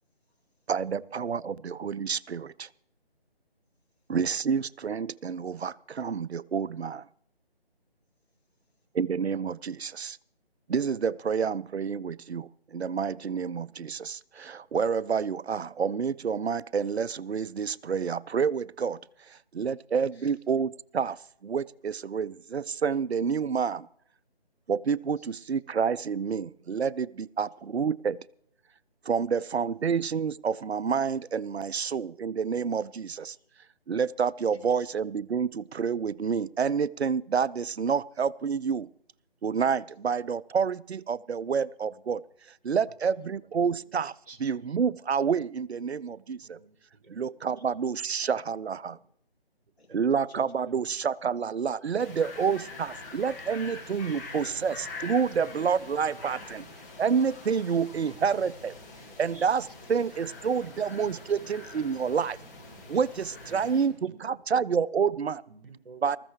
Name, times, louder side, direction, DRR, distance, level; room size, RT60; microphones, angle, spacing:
voice 1, 0.0-0.7 3.7-4.2 8.1-8.9 20.1-20.3 25.2-25.6 26.6-26.7 29.3-29.4 29.8-29.9 33.3-33.5 34.1-34.2 34.5-34.9 43.0-43.1 44.8-44.9 47.6-47.7 49.8-49.9 50.3-50.4 63.3-63.6, left 1 dB, 85° left, -2 dB, 7.4 m, -63 dB
voice 2, 0.7-2.7 4.1-7.1 8.9-10.2 10.7-19.0 19.3-23.9 24.7-28.2 29.1-33.4 33.9-38.9 39.4-42.2 42.6-44.1 44.4-46.6 47.1-48.9 49.9-56.6 57.0-58.7 59.2-59.6 59.9-62.4 62.9-65.4 66.0-66.2, right 6 dB, 85° right, 20 dB, 0.5 m, -28 dB
voice 3, 42.9-44.5 46.0-46.2 46.4-48.3 49.9-51.0 51.2-51.4 52.5-52.6 53.8-56.6 57.9-60.0 60.6-62.8 63.5-64.8 65.5-66.2, right 3 dB, 60° right, 10 dB, 1.8 m, -53 dB
sound 1, 52.0-63.9, left 3 dB, 15° left, 1.6 m, -45 dB
20.0 x 14.5 x 3.3 m, 0.67 s
figure-of-eight pair, 155°, 31 cm